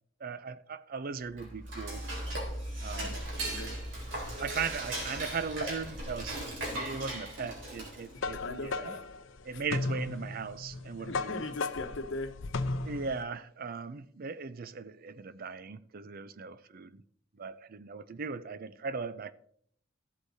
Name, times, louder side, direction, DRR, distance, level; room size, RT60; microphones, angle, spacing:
voice 1, 0.2-2.0 2.8-3.2 4.4-6.4 6.7-9.0 9.4-11.4 12.8-17.0 17.4-19.3, right 5 dB, 50° right, 0.5 m, -38 dB
Dishes pots and pans / Cutlery silverware, 1.3-8.2, right 1 dB, 70° right, 3.9 m, -37 dB
voice 2, 2.9-3.8 8.1-9.0 9.5-9.6 11.0-12.4, left 2 dB, 70° left, 1.0 m, -40 dB
sound 1, 7.8-13.2, left 3 dB, 85° left, 0.6 m, -36 dB
14.5 x 8.1 x 2.7 m
head